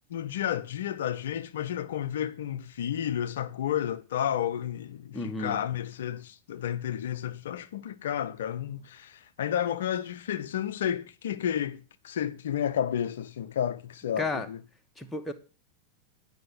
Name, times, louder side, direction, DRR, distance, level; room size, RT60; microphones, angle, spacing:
voice 1, 0.1-14.6, left 10 dB, 60° left, 0.5 m, -31 dB
voice 2, 5.1-5.6 14.2-14.5 15.0-15.3, left 2 dB, 5° left, 1.2 m, -32 dB
9.4 x 5.3 x 7.9 m
figure-of-eight pair, 90°, 0 cm